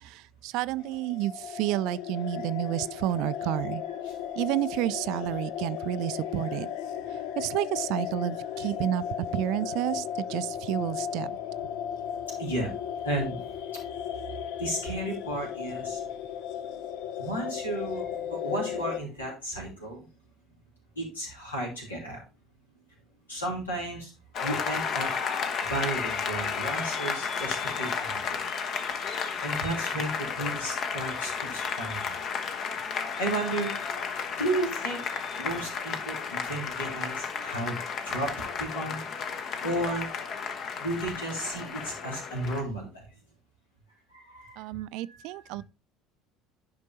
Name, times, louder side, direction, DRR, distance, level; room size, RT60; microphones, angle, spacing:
voice 1, 0.0-3.8 4.4-6.7 7.4-9.0 9.3-10.0 10.3-11.3 44.6-45.6, right 14 dB, 60° right, 0.3 m, -30 dB
sound 1, 0.8-19.0, left 9 dB, 60° left, 0.6 m, -35 dB
voice 2, 12.4-12.7 13.0-13.4 14.6-16.1 16.5-16.8 17.2-20.0 21.0-22.2 23.3-24.1 24.4-25.1 25.7-28.4 29.4-32.2 33.2-33.7 34.4-35.0 35.4-37.8 38.0-39.0 39.6-40.1 40.8-43.1 44.1-44.6 45.0-45.4, right 1 dB, 85° left, 2.9 m, -33 dB
Applause, 24.3-42.6, left 6 dB, 45° left, 1.0 m, -33 dB
10.5 x 5.1 x 2.8 m
figure-of-eight pair, 65°, 0 cm